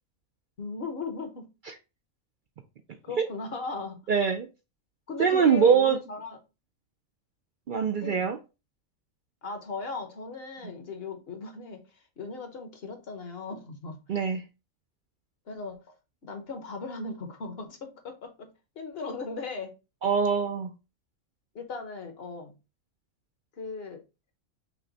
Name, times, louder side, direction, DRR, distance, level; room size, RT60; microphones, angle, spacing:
voice 1, 0.6-1.5 3.0-4.2 5.1-6.4 8.0-8.3 9.4-14.0 15.5-16.0 16.2-19.7 21.5-22.6 23.5-24.0, left 4 dB, 50° left, 1.0 m, -38 dB
voice 2, 4.1-4.5 5.2-6.0 7.7-8.4 14.1-14.4 20.0-20.7, right 6 dB, 70° right, 0.4 m, -23 dB
5.9 x 2.1 x 3.8 m
omnidirectional pair, 1.4 m